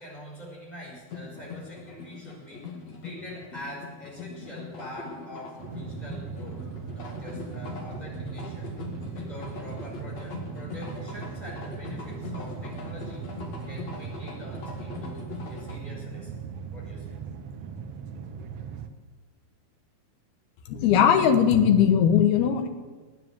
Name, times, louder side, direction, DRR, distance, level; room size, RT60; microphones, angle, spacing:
voice 1, 0.0-2.7 3.0-6.6 6.9-8.7 9.1-13.3 13.7-16.3 16.7-17.2, equal, 10° left, -4 dB, 5.5 m, -44 dB
sound 1, 1.1-15.8, left 4 dB, 50° left, 2.8 m, -41 dB
sound 2, 5.6-18.9, right 6 dB, 80° right, 1.4 m, -38 dB
voice 2, 20.7-22.7, left 8 dB, 80° left, 5 dB, 3.2 m, -19 dB
18.5 x 9.5 x 7.5 m, 1.3 s
omnidirectional pair, 4.4 m